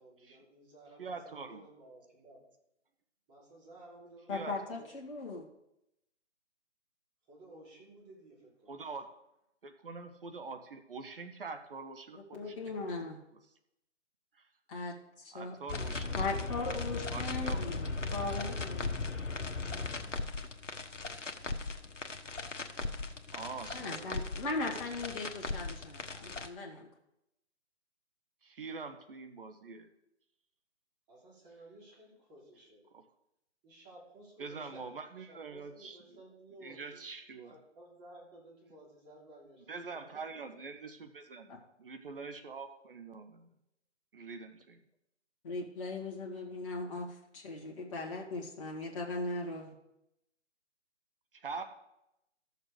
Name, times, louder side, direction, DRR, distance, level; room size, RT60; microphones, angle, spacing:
voice 1, 0.0-2.4 3.3-4.9 7.2-8.8 31.1-32.9 33.6-34.9 35.2-37.0 37.4-40.4, right 1 dB, 15° right, -5 dB, 3.2 m, -55 dB
voice 2, 1.0-1.6 4.3-4.8 8.7-9.1 9.6-12.7 15.3-16.3 17.1-17.7 23.3-24.2 28.4-29.9 32.9-33.0 34.4-36.0 36.6-37.5 39.7-41.5 41.8-43.5 44.1-44.8 51.3-51.6, right 4 dB, 50° right, 7 dB, 1.0 m, -44 dB
voice 3, 4.3-5.4 12.3-13.2 14.7-15.6 16.2-19.0 23.7-26.9 41.5-41.6 45.4-49.7, left 3 dB, 25° left, -3 dB, 1.6 m, -39 dB
sound 1, 15.7-26.5, left 3 dB, 85° left, 1.1 m, -37 dB
14.0 x 6.7 x 4.9 m, 0.86 s
figure-of-eight pair, 145°, 36 cm